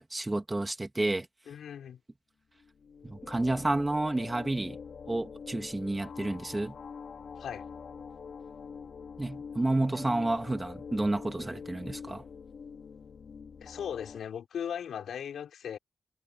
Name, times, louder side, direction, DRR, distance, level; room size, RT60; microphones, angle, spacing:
voice 1, 0.0-1.3 3.0-4.8 5.1-6.8 9.2-12.2, right 2 dB, 15° right, 2.2 m, -30 dB
voice 2, 1.5-2.0 7.4-7.7 13.6-15.8, left 8 dB, 85° left, 6.1 m, -38 dB
sound 1, 2.6-14.2, left 6 dB, 55° left, 3.5 m, -45 dB
wide cardioid pair, 155°, 0 cm